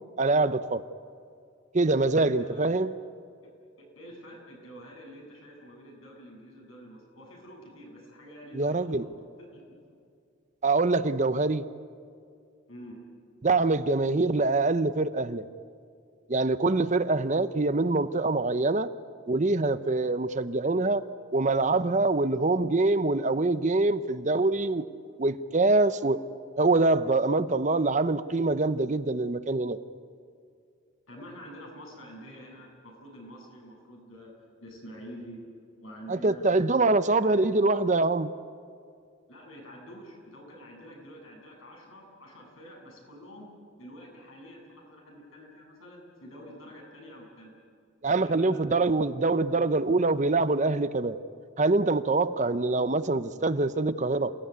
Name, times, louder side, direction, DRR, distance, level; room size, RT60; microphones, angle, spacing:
voice 1, 0.2-0.8 1.7-2.9 8.5-9.1 10.6-11.7 13.4-15.4 16.3-18.9 19.3-21.0 21.3-24.8 25.2-26.2 26.6-29.8 36.1-38.3 48.0-51.2 51.6-54.3, right 3 dB, 35° right, 12 dB, 0.7 m, -24 dB
voice 2, 2.1-2.7 3.4-3.5 3.8-9.1 9.4-9.9 12.7-13.0 31.1-34.3 34.6-35.4 35.8-37.4 39.3-43.5 43.8-47.5 48.2-48.6, equal, 85° left, 0 dB, 8.0 m, -47 dB
28.0 x 17.5 x 9.5 m, 2.3 s
head